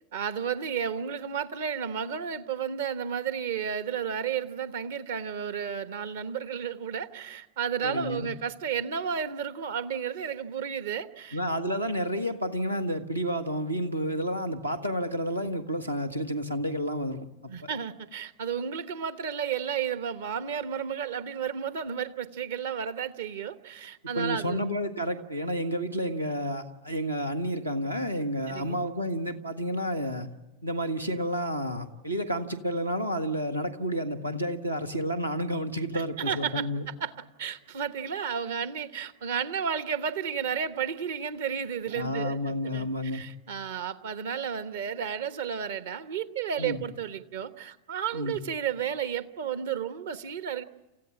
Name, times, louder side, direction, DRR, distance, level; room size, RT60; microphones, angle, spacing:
voice 1, 0.1-11.4 17.5-24.6 28.5-28.8 35.9-36.7 37.0-37.1 37.4-50.6, right 7 dB, 60° right, 13 dB, 1.1 m, -32 dB
voice 2, 7.8-8.3 11.3-17.3 17.6-17.7 24.1-30.3 30.6-36.9 41.9-43.2 46.6-46.8 48.1-48.4, equal, 85° right, 5 dB, 1.6 m, -30 dB
29.0 x 15.0 x 8.7 m, 1.0 s
figure-of-eight pair, 90°, 0 cm